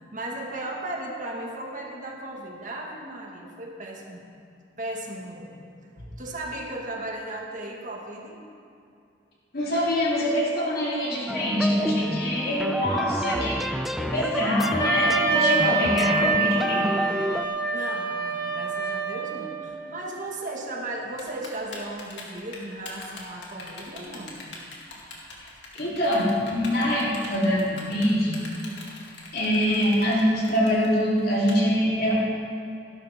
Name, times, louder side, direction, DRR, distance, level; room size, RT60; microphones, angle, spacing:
voice 1, 0.0-4.2 4.8-5.6 6.2-8.4 17.7-24.4, right 1 dB, 45° right, -1 dB, 1.7 m, -36 dB
voice 2, 9.5-13.6 14.0-16.9 25.7-28.4 29.3-32.2, equal, 55° left, -6 dB, 3.5 m, -24 dB
sound 1, 11.3-17.5, equal, ahead, 0.4 m, -29 dB
Wind instrument woodwind instrument, 14.8-19.7, right 3 dB, 20° left, 1.5 m, -26 dB
Typing, 21.2-31.5, left 3 dB, 80° left, 2.4 m, -42 dB
17.0 x 12.0 x 3.7 m, 2.5 s
head